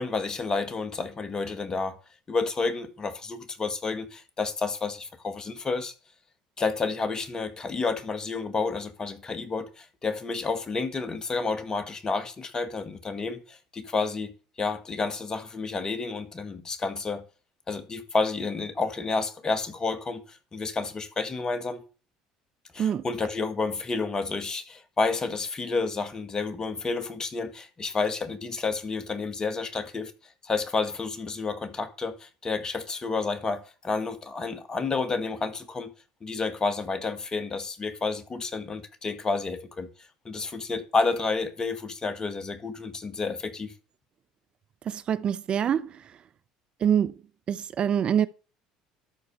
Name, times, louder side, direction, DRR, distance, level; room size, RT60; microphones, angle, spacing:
voice 1, 0.0-2.0 2.3-5.9 6.6-17.2 17.7-21.8 22.7-30.1 30.4-35.9 36.2-39.9 40.3-43.7, left 4 dB, 30° left, 1.8 m, -30 dB
voice 2, 44.9-45.9 46.8-47.1 47.5-48.3, right 9 dB, 45° right, 0.6 m, -25 dB
13.0 x 4.5 x 6.8 m
hypercardioid pair, 75°, 2 cm